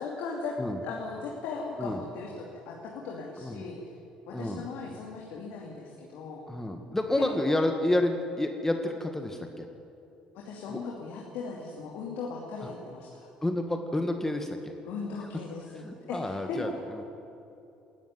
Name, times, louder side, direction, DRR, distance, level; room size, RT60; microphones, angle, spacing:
voice 1, 0.0-0.6 0.8-3.8 4.3-6.4 7.2-7.3 10.3-13.3 14.8-16.7, left 4 dB, 65° left, -1 dB, 2.6 m, -38 dB
voice 2, 3.4-3.7 4.3-4.6 6.5-9.7 10.7-10.8 12.6-12.7 13.4-14.7 15.2-15.3 15.7-17.0, left 1 dB, 10° left, 5 dB, 1.8 m, -30 dB
20.5 x 13.5 x 9.5 m, 2.8 s
hypercardioid pair, 55°, 3 cm